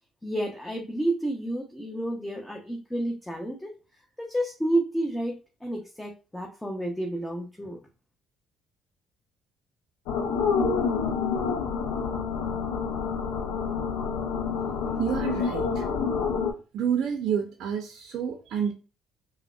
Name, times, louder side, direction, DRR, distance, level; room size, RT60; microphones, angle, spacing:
voice 1, 0.2-3.7 4.2-7.8, right 1 dB, 10° left, 1 dB, 0.6 m, -30 dB
sound 1, 10.1-16.5, left 5 dB, 80° left, 0.4 m, -28 dB
voice 2, 15.0-15.9 16.7-18.7, right 8 dB, 65° right, 4 dB, 0.4 m, -29 dB
3.4 x 2.1 x 2.2 m, 0.33 s
hypercardioid pair, 60°, 0 cm